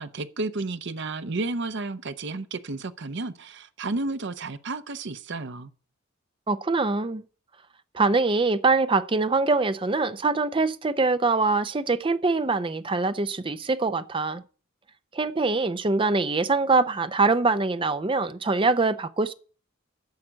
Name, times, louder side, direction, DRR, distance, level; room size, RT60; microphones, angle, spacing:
voice 1, 0.0-5.7, right 3 dB, 55° right, 0.8 m, -32 dB
voice 2, 6.5-7.2 7.9-14.4 15.1-19.3, right 3 dB, 25° right, 0.6 m, -23 dB
10.5 x 6.6 x 7.4 m
head